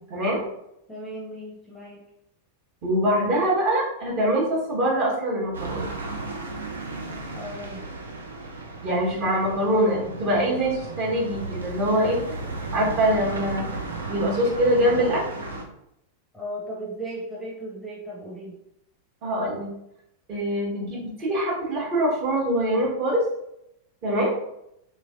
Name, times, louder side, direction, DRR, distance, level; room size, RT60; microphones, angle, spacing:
voice 1, 0.1-0.4 2.8-5.9 8.8-12.2 12.7-13.7 14.1-15.2 19.2-19.7 20.3-23.2 24.0-24.3, equal, 40° right, -5 dB, 1.5 m, -23 dB
voice 2, 0.9-2.0 7.3-7.8 16.3-18.5, right 1 dB, ahead, -5 dB, 0.8 m, -36 dB
sound 1, 5.5-15.6, right 2 dB, 75° right, 0.5 m, -35 dB
3.3 x 3.1 x 2.4 m, 0.80 s
figure-of-eight pair, 90°, 0 cm